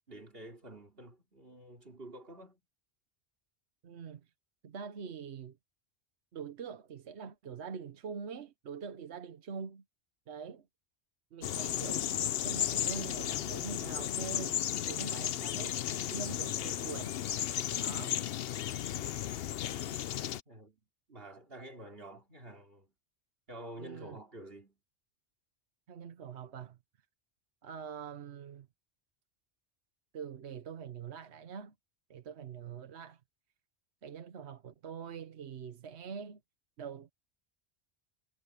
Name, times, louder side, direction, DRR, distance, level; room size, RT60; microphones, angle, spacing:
voice 1, 0.0-2.6 20.5-20.8 21.1-22.9 23.5-24.8, right 1 dB, 55° right, 4.2 m, -49 dB
voice 2, 3.8-4.2 4.6-5.6 6.3-9.8 10.3-10.7 11.3-15.8 16.1-17.2 17.7-18.2 23.8-24.2 25.9-26.8 27.6-28.7 30.1-31.7 32.1-33.2 34.0-36.4 36.8-37.1, right 6 dB, 75° right, 1.2 m, -44 dB
sound 1, 11.4-20.4, left 11 dB, 65° left, 0.8 m, -34 dB
omnidirectional pair, 1.1 m